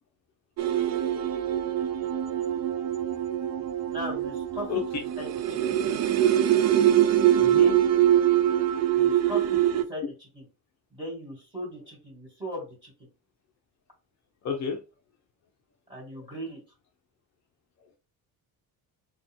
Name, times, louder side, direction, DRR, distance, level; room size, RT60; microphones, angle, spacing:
sound 1, 0.6-9.8, right 11 dB, 45° right, 0.4 m, -23 dB
voice 1, 3.9-5.8 8.9-10.4 10.9-12.9 15.9-16.6, equal, 10° right, 2.3 m, -38 dB
voice 2, 7.4-7.8 8.5-8.6 10.0-10.1 14.4-14.8 16.2-16.3, left 6 dB, 45° left, 0.6 m, -32 dB
4.2 x 2.3 x 3.6 m
cardioid pair, 150°, 37 cm